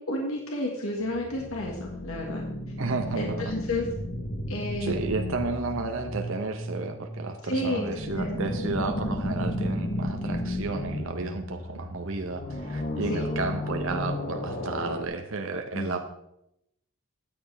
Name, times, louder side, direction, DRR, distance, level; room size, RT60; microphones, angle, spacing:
voice 1, 0.1-2.4 3.1-3.9 4.5-5.4 7.4-7.9 8.1-8.6 13.1-13.3 15.7-16.0, left 1 dB, 70° left, 0 dB, 1.8 m, -31 dB
sound 1, 1.0-15.0, left 1 dB, 40° left, 1.1 m, -33 dB
voice 2, 2.8-3.5 4.8-16.0, right 3 dB, 65° right, 5 dB, 0.8 m, -32 dB
13.0 x 9.4 x 3.4 m, 0.81 s
head